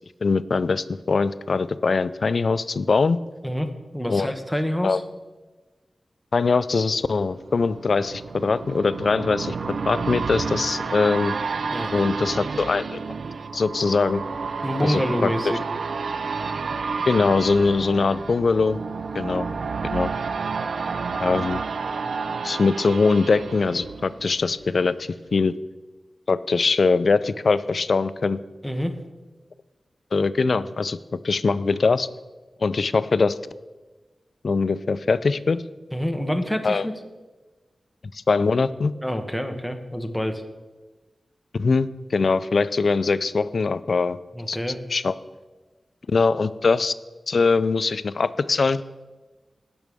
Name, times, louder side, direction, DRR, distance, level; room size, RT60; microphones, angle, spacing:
voice 1, 0.2-3.2 4.1-4.3 4.8-5.0 6.3-11.4 11.9-13.0 13.5-14.2 14.8-15.3 17.1-18.8 19.1-19.5 19.8-20.1 21.2-21.6 22.4-25.5 26.3-28.4 30.1-32.1 32.6-33.4 34.4-35.6 36.6-36.9 38.1-38.9 41.5-44.2 44.5-44.6 44.9-45.1 46.1-46.9 47.3-48.8, left 4 dB, 60° left, 15 dB, 0.3 m, -22 dB
voice 2, 3.4-5.0 11.7-12.1 14.6-15.6 28.6-29.0 35.9-36.9 39.0-40.4 44.3-44.8, equal, ahead, 6 dB, 0.8 m, -27 dB
sound 1, 6.9-24.7 25.1-25.2, right 4 dB, 80° right, 0.4 m, -30 dB
17.5 x 6.1 x 3.5 m, 1.2 s
wide cardioid pair, 125°, 0 cm